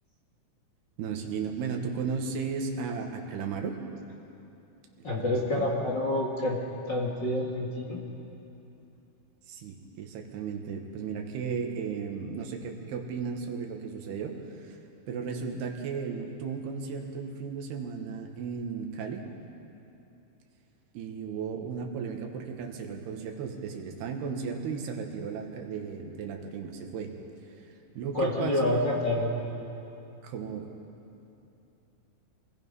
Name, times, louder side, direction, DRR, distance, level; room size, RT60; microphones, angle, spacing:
voice 1, 1.0-3.8 5.2-5.7 9.5-14.8 15.1-19.3 21.0-27.1 28.0-28.8 30.2-30.7, right 6 dB, 85° right, 3 dB, 3.6 m, -35 dB
voice 2, 5.0-6.6 6.9-8.0 28.1-29.3, left 1 dB, 35° left, -3 dB, 2.1 m, -28 dB
27.0 x 20.0 x 5.5 m, 2.9 s
omnidirectional pair, 4.5 m